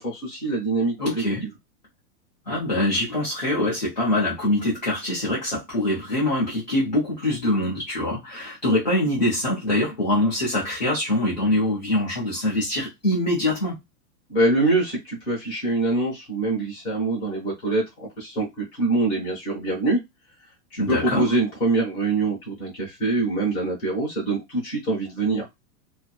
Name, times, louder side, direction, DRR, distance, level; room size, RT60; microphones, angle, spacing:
voice 1, 0.0-1.2 14.3-20.0 20.7-25.4, right 2 dB, 10° left, 0.8 m, -24 dB
voice 2, 1.0-1.4 2.5-13.8 20.8-21.3, left 1 dB, 30° left, 0.4 m, -24 dB
2.5 x 2.4 x 2.2 m
supercardioid pair, 180°, 49 cm